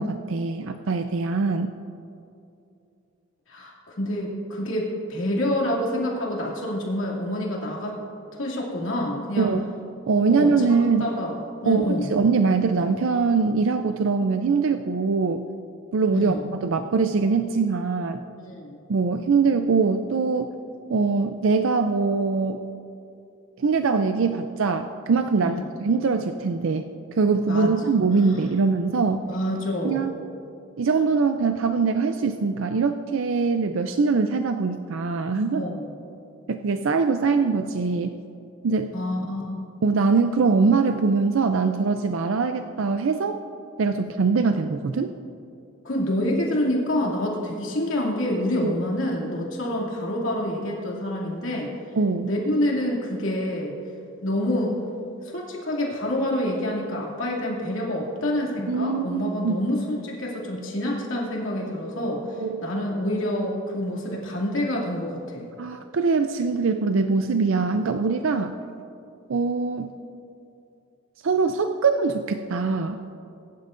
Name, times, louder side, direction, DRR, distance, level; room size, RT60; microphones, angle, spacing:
voice 1, 0.0-1.7 9.4-9.7 10.1-11.1 11.6-15.4 15.9-18.2 18.9-20.5 20.9-22.6 23.6-26.9 27.2-29.3 29.8-30.1 30.8-35.6 36.5-38.1 38.6-38.9 39.8-43.4 43.8-45.1 48.6-48.7 52.0-52.3 58.7-59.6 62.4-62.7 65.6-68.6 69.3-69.9 71.2-73.0, right 4 dB, 65° right, 7 dB, 0.4 m, -22 dB
voice 2, 3.5-8.0 8.3-9.5 10.3-12.1 16.1-16.4 18.4-18.8 25.4-25.6 27.5-27.7 28.2-28.4 29.3-30.1 35.5-35.9 38.9-39.6 45.8-51.7 52.2-53.7 54.2-54.7 55.2-65.5, left 1 dB, 70° left, -3 dB, 2.5 m, -27 dB
20.0 x 10.5 x 2.6 m, 2.6 s
head